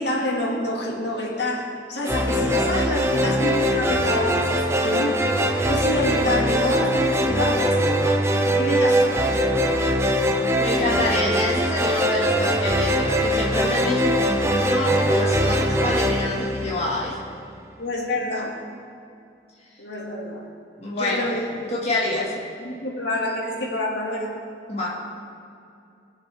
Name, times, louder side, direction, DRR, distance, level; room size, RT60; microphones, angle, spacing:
voice 1, 0.0-5.2 5.7-7.8 8.5-9.4 17.8-18.6 19.8-20.4 20.9-21.7 22.0-22.2 22.6-24.3, left 1 dB, 75° left, -2 dB, 2.1 m, -27 dB
sound 1, 2.1-17.3, equal, 15° right, 0.6 m, -22 dB
voice 2, 10.6-17.2 20.8-22.3 24.7-25.0, left 1 dB, 35° left, -5 dB, 1.7 m, -27 dB
21.0 x 7.2 x 3.5 m, 2.5 s
head